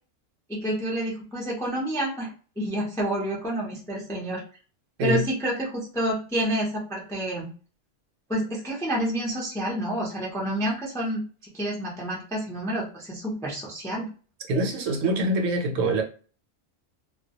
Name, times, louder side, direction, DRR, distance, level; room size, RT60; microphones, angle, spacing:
voice 1, 0.5-4.4 5.0-7.5 8.3-11.2 11.5-14.1, right 1 dB, 5° left, 0.3 m, -29 dB
voice 2, 14.5-16.0, right 1 dB, 80° right, 1.0 m, -24 dB
2.2 x 2.2 x 2.8 m
omnidirectional pair, 1.3 m